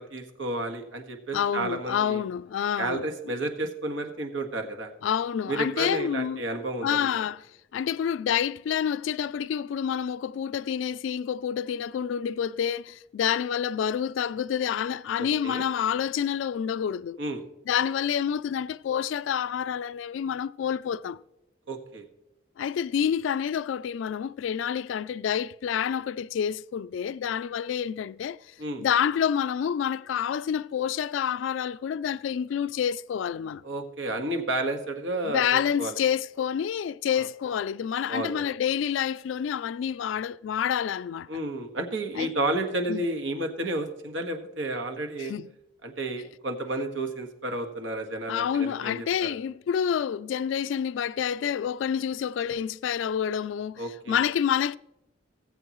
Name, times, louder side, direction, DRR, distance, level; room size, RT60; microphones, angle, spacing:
voice 1, 0.0-2.2 2.8-4.9 5.5-7.1 15.2-15.6 17.2-17.4 21.7-22.0 28.6-28.8 33.6-35.4 35.8-35.9 37.2-37.3 38.1-38.5 41.3-45.3 45.8-49.4 53.8-54.2, right 2 dB, 85° right, 1.6 m, -31 dB
voice 2, 1.3-3.0 5.0-6.4 6.8-7.4 7.7-17.2 17.7-21.2 22.6-33.6 35.3-41.3 42.1-42.3 42.9-43.0 45.2-45.5 48.3-54.8, left 8 dB, 85° left, 0.3 m, -28 dB
19.0 x 7.9 x 3.1 m
head